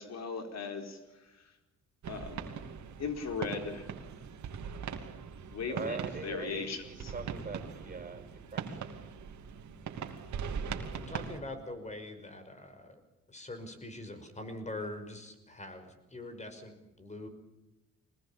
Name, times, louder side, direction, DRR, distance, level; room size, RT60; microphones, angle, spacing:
voice 1, 0.0-1.6 2.1-2.5 3.0-3.9 5.5-7.1, left 5 dB, 60° left, 6 dB, 4.2 m, -38 dB
sound 1, 2.0-11.4, right 6 dB, 70° right, 2.8 m, -41 dB
voice 2, 5.6-8.8, right 4 dB, 25° right, 6 dB, 5.7 m, -42 dB
voice 3, 10.9-13.0 13.3-17.3, left 2 dB, 25° left, 8 dB, 5.5 m, -43 dB
24.0 x 20.0 x 7.2 m, 1.0 s
cardioid pair, 90°, 30 cm